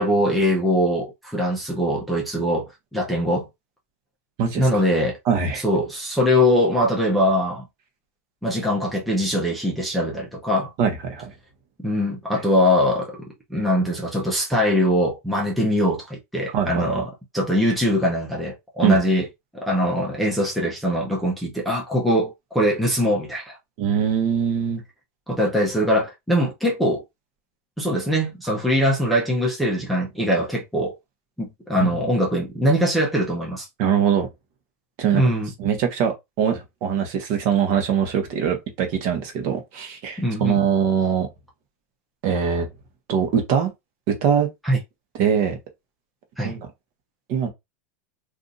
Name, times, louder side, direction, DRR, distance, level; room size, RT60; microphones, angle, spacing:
voice 1, 0.0-3.5 4.6-5.2 5.5-7.6 8.4-10.7 11.8-13.2 13.5-19.3 19.5-23.6 25.3-27.0 27.8-30.9 31.4-33.7 35.1-35.5 40.2-40.6 44.6-44.8 46.4-46.5, equal, ahead, 0.6 m, -22 dB
voice 2, 4.4-4.8 5.3-5.6 10.8-11.3 16.5-17.0 18.8-19.0 23.8-24.8 31.7-32.1 33.8-34.3 35.0-35.2 35.6-41.3 42.2-42.7 43.1-43.7 44.1-44.5 45.2-45.6 46.4-46.7 47.3-47.5, right 7 dB, 40° right, 1.0 m, -22 dB
2.6 x 2.5 x 3.9 m
supercardioid pair, 165°, 8 cm